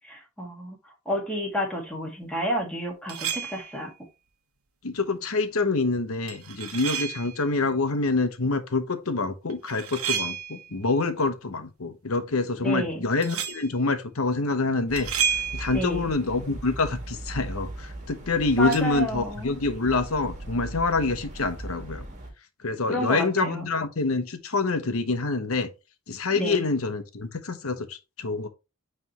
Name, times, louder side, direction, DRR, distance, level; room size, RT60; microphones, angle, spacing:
voice 1, 0.0-0.8 1.1-3.9 12.6-13.1 15.7-16.1 18.6-19.6 22.9-23.7 26.3-26.6, equal, 5° left, 2.0 m, -30 dB
sound 1, 3.1-3.8 6.3-7.4 9.5-10.8 13.2-13.7 15.0-16.0 18.7-18.8, right 8 dB, 90° right, 1.1 m, -31 dB
voice 2, 4.8-15.1 15.5-22.1 22.6-25.7 26.1-28.5, left 3 dB, 80° left, 1.0 m, -26 dB
sound 2, 14.9-22.3, right 2 dB, 35° right, 1.6 m, -39 dB
9.3 x 3.4 x 3.0 m
head